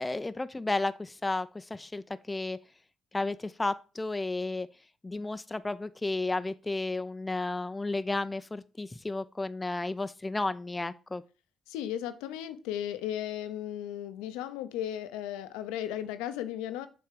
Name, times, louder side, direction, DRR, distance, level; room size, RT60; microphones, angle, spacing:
voice 1, 0.0-2.6 3.1-4.7 5.0-11.2, left 2 dB, 20° left, 0.4 m, -33 dB
voice 2, 11.7-16.9, left 11 dB, 85° left, 0.5 m, -35 dB
6.6 x 3.5 x 5.0 m
hypercardioid pair, 50°, 0 cm